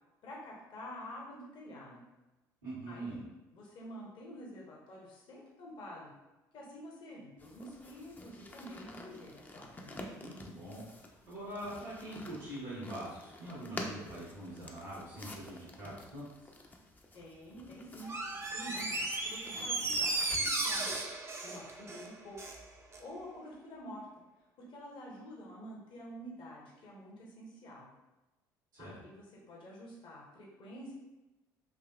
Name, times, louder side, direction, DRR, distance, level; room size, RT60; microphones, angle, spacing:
voice 1, 0.2-2.0 2.9-3.2 3.5-6.1 6.5-10.0 17.1-18.1 18.5-21.0 21.4-22.4 23.0-24.0 24.7-27.9 28.8-31.0, equal, 55° left, -3 dB, 1.0 m, -48 dB
voice 2, 2.6-3.2 10.2-10.8 11.3-16.2 28.7-28.9, right 1 dB, 90° right, -14 dB, 1.4 m, -43 dB
sound 1, 7.4-21.0, left 1 dB, 20° left, 0.5 m, -49 dB
Door, 18.0-22.6 22.9-23.0, right 2 dB, 25° right, 0.5 m, -35 dB
3.8 x 2.8 x 2.3 m, 1.0 s
hypercardioid pair, 55°, 10 cm